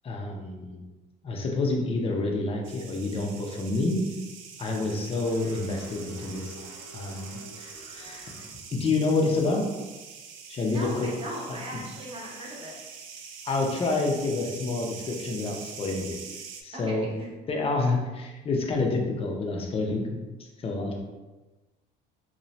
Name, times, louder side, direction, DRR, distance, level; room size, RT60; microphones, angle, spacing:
voice 1, 0.0-0.8 1.2-4.0 4.6-6.6 6.9-8.3 8.7-9.6 10.5-11.1 11.5-11.6 13.5-16.2 16.6-17.1 17.5-20.2 20.6-21.0, left 3 dB, 30° left, 0 dB, 0.5 m, -28 dB
sound 1, 2.6-16.6, right 6 dB, 75° right, 0.4 m, -44 dB
voice 2, 4.7-5.0 10.7-12.8 16.7-17.3, equal, 25° right, -3 dB, 0.9 m, -39 dB
sound 2, 5.2-8.5, equal, 85° left, 1.1 m, -49 dB
2.7 x 2.2 x 3.0 m, 1.1 s
supercardioid pair, 95°, 20 cm